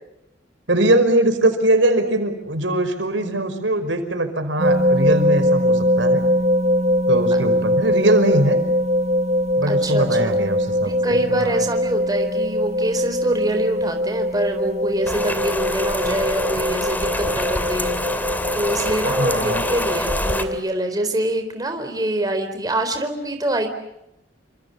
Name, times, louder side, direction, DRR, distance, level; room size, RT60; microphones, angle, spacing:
voice 1, 0.7-6.2 7.1-8.6 9.6-11.6 19.0-19.7, right 1 dB, 85° right, 8 dB, 5.2 m, -21 dB
sound 1, 4.6-20.6, equal, 40° right, 0.9 m, -22 dB
voice 2, 9.7-10.3 10.8-17.9 18.5-23.7, right 1 dB, 20° right, 6 dB, 4.2 m, -25 dB
Rain, 15.1-20.4, left 1 dB, 10° left, 2.7 m, -26 dB
29.0 x 26.0 x 7.1 m, 0.84 s
head